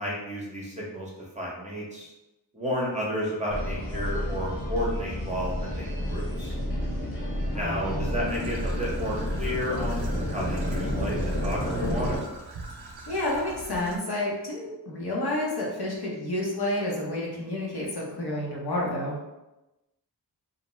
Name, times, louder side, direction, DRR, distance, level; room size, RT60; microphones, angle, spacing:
voice 1, 0.0-2.1 2.5-6.5 7.5-12.2, equal, 15° right, -4 dB, 0.7 m, -32 dB
sound 1, 3.5-12.2, equal, 30° left, 0.9 m, -30 dB
voice 2, 7.5-8.2 13.1-19.1, left 1 dB, 65° left, -4 dB, 0.8 m, -30 dB
Traffic noise roadway noise / Trickle dribble, 8.2-14.0, right 3 dB, 65° right, 0.5 m, -43 dB
2.5 x 2.1 x 3.0 m, 0.99 s
wide cardioid pair, 70°, 42 cm